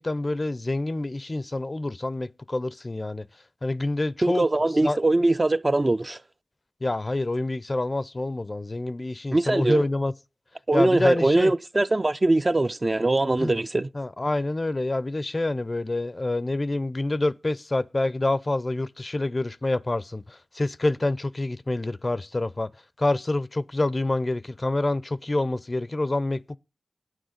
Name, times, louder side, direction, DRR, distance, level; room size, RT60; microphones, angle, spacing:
voice 1, 0.0-3.3 3.6-4.5 4.8-5.0 6.8-10.1 10.7-11.5 13.4-13.5 13.9-22.7 23.0-26.6, left 2 dB, 35° left, 0.4 m, -27 dB
voice 2, 4.2-6.2 9.3-9.9 10.7-13.9, right 2 dB, 35° right, 0.4 m, -22 dB
9.2 x 6.4 x 5.1 m
cardioid pair, 40°, 0 cm